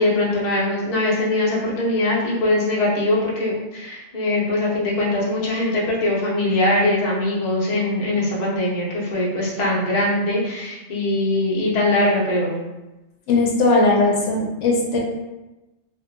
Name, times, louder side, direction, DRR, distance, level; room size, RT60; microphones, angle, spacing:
voice 1, 0.0-12.5, left 1 dB, 45° left, -5 dB, 0.7 m, -21 dB
voice 2, 13.3-15.0, left 2 dB, 80° left, -1 dB, 0.9 m, -18 dB
2.6 x 2.6 x 2.5 m, 1.0 s
omnidirectional pair, 1.2 m